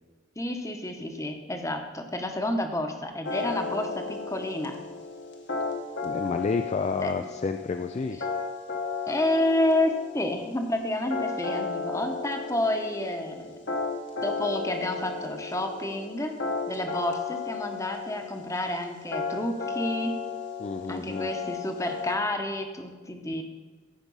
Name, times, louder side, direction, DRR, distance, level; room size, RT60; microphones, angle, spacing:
voice 1, 0.4-4.8 7.0-7.3 9.1-13.6 14.2-16.3 16.7-20.2 20.9-23.4, left 1 dB, 15° left, 5 dB, 0.9 m, -29 dB
sound 1, 3.2-22.2, left 4 dB, 60° left, 1.4 m, -34 dB
voice 2, 6.0-8.2 20.6-21.3, left 4 dB, 35° left, 7 dB, 0.3 m, -30 dB
14.5 x 5.2 x 5.4 m, 1.4 s
head